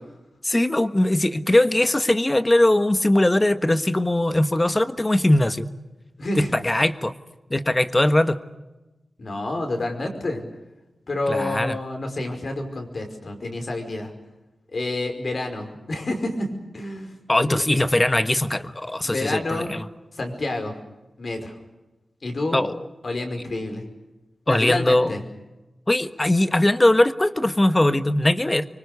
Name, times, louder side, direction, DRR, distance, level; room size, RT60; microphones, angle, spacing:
voice 1, 0.4-5.7 6.4-7.1 7.5-8.4 11.3-11.8 17.3-19.8 22.5-22.8 24.5-25.1 25.9-28.7, left 1 dB, 20° left, 10 dB, 1.3 m, -20 dB
voice 2, 6.2-6.5 9.2-10.4 11.1-14.1 14.7-16.5 16.7-17.1 17.5-17.6 19.0-19.7 20.1-20.8 21.2-21.6 22.2-22.6 23.0-23.8 24.5-25.2, left 2 dB, 55° left, 4 dB, 5.3 m, -28 dB
25.5 x 24.5 x 6.8 m, 1.1 s
wide cardioid pair, 105°, 0 cm